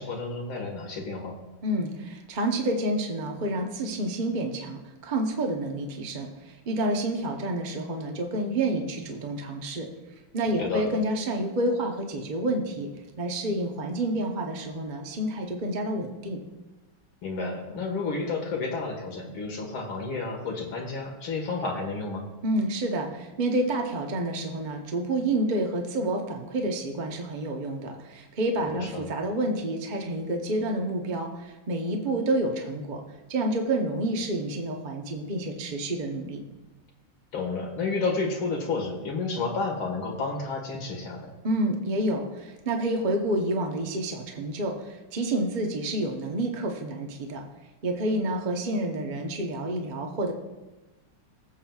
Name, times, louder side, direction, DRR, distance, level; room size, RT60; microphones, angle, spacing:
voice 1, 0.0-1.4 10.6-10.9 17.2-22.2 28.7-29.1 37.3-41.3, left 3 dB, 70° left, 1 dB, 2.5 m, -31 dB
voice 2, 1.6-9.9 10.3-12.9 13.2-16.4 22.4-33.0 33.3-36.4 41.4-47.4 47.8-50.3, right 1 dB, 45° right, 3 dB, 0.5 m, -29 dB
19.5 x 7.6 x 2.4 m, 1.1 s
omnidirectional pair, 2.4 m